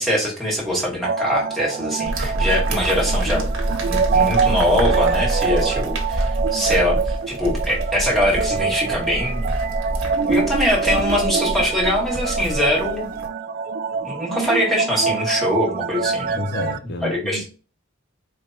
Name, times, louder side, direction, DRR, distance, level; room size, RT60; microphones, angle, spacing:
voice 1, 0.0-3.5 3.9-9.4 10.3-13.1 14.0-16.4 17.0-17.4, equal, ahead, 1.7 m, -22 dB
sound 1, 1.0-16.8, right 5 dB, 45° right, 0.3 m, -25 dB
sound 2, 2.0-13.3, right 1 dB, 75° right, 1.2 m, -26 dB
voice 2, 16.4-17.4, left 2 dB, 55° left, 0.5 m, -29 dB
4.6 x 3.2 x 2.7 m
head